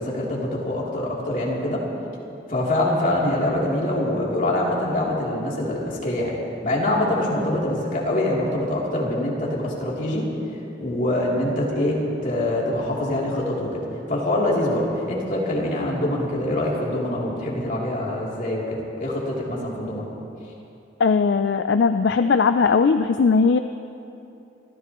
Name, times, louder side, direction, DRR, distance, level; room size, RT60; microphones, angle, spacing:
voice 1, 0.0-1.8 2.5-6.3 6.6-10.3 10.8-13.8 14.1-20.1, left 1 dB, 50° left, -5 dB, 3.1 m, -24 dB
voice 2, 21.0-23.6, left 5 dB, 70° left, 9 dB, 0.4 m, -18 dB
25.5 x 14.5 x 3.1 m, 2.8 s
head